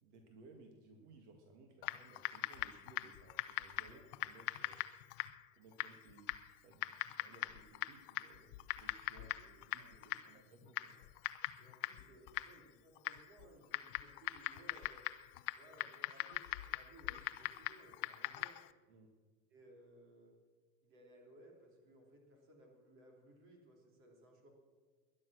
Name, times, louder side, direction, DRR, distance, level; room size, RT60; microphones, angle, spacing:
voice 1, 0.0-4.8 5.6-9.3 9.7-11.0 18.9-19.1, right 3 dB, 65° right, 3 dB, 2.1 m, -61 dB
Typing, 1.8-18.7, left 17 dB, 45° left, 0.6 m, -43 dB
voice 2, 9.1-10.3 10.8-11.1 11.6-15.1 15.5-18.6 19.5-20.4 20.8-24.5, right 1 dB, 35° right, 1 dB, 3.3 m, -62 dB
20.0 x 11.0 x 6.3 m, 1.4 s
supercardioid pair, 175°, 37 cm